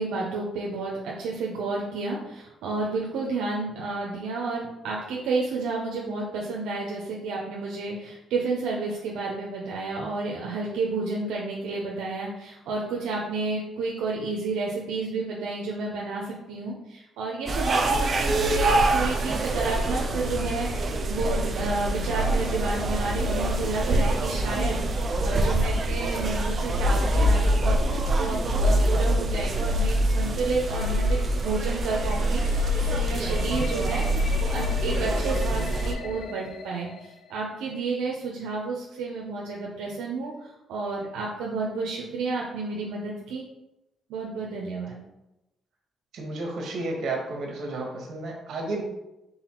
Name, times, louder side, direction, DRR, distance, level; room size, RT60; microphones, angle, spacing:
voice 1, 0.0-43.4 44.1-45.0, right 3 dB, 90° right, -2 dB, 0.6 m, -31 dB
sound 1, 17.5-35.9, right 1 dB, 45° right, 0.6 m, -25 dB
Alien ambient, 30.7-37.7, left 4 dB, 75° left, 0.6 m, -40 dB
voice 2, 46.1-48.9, right 2 dB, 65° right, 1 dB, 1.2 m, -32 dB
4.1 x 4.0 x 3.0 m, 0.92 s
cardioid pair, 90°, 0 cm